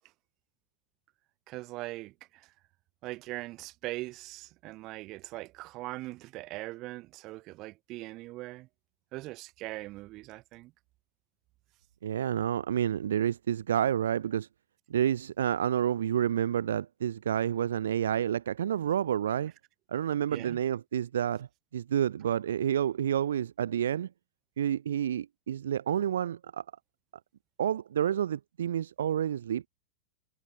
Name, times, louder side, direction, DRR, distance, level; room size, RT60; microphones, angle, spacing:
voice 1, 1.5-2.5 3.0-8.7 9.1-10.7 20.3-20.6, right 19 dB, 40° right, 5.5 m, -41 dB
voice 2, 12.0-14.5 14.9-19.5 19.9-21.5 21.7-24.1 24.6-26.6 27.6-29.7, right 10 dB, 65° right, 1.1 m, -29 dB
figure-of-eight pair, 90°, 0 cm